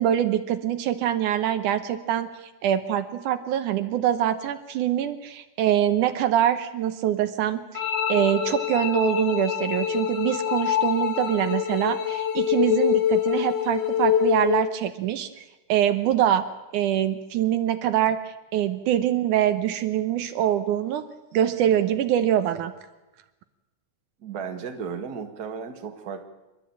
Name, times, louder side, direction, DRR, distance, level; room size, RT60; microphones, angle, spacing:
voice 1, 0.0-15.4 15.7-16.5 16.7-18.2 18.5-21.0 21.3-22.7, right 11 dB, 75° right, 10 dB, 2.3 m, -24 dB
sound 1, 7.7-14.7, left 9 dB, 50° left, 1.4 m, -25 dB
voice 2, 24.2-26.3, right 6 dB, 35° right, 5 dB, 1.9 m, -34 dB
28.5 x 12.0 x 8.7 m, 1.1 s
omnidirectional pair, 3.7 m